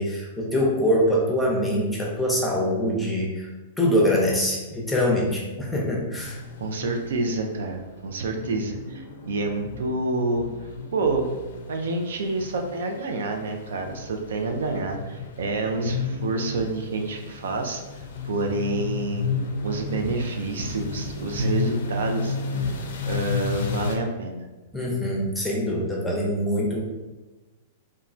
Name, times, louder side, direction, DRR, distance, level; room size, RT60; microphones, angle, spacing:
voice 1, 0.0-3.5 3.8-6.4 24.7-26.8, equal, 5° left, -3 dB, 0.6 m, -24 dB
sound 1, 6.2-24.0, left 4 dB, 75° left, 0.4 m, -33 dB
voice 2, 6.6-10.5 10.9-11.3 11.7-17.8 18.2-19.4 19.6-22.8 23.1-24.5, right 3 dB, 80° right, 4 dB, 0.4 m, -28 dB
3.0 x 2.2 x 2.4 m, 1.2 s
hypercardioid pair, 135°, 0 cm